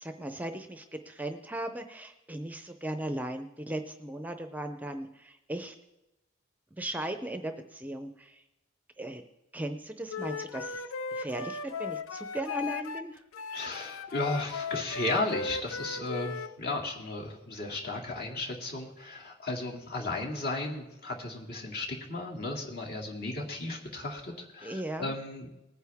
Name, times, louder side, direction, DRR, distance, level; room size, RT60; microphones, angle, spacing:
voice 1, 0.0-5.7 6.8-8.4 9.0-9.2 9.5-10.8 11.1-13.2 24.6-25.1, right 1 dB, 10° right, 7 dB, 0.5 m, -37 dB
Wind instrument woodwind instrument, 10.1-13.0 13.3-16.5, left 5 dB, 85° left, 0.5 m, -37 dB
voice 2, 13.5-25.5, left 2 dB, 50° left, -1 dB, 2.4 m, -35 dB
20.0 x 9.4 x 3.5 m, 0.94 s
head